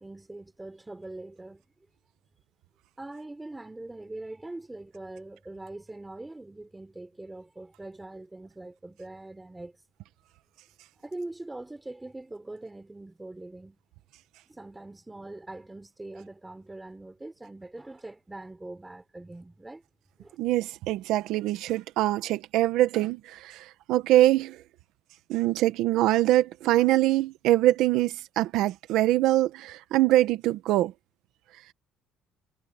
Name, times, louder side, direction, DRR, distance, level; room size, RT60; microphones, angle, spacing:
voice 1, 0.0-1.6 3.0-9.8 11.0-13.8 14.5-19.8 20.2-20.4, right 2 dB, 10° right, 3.7 m, -42 dB
voice 2, 20.4-24.6 25.3-30.9, right 15 dB, 75° right, 1.1 m, -23 dB
cardioid pair, 140°, 0 cm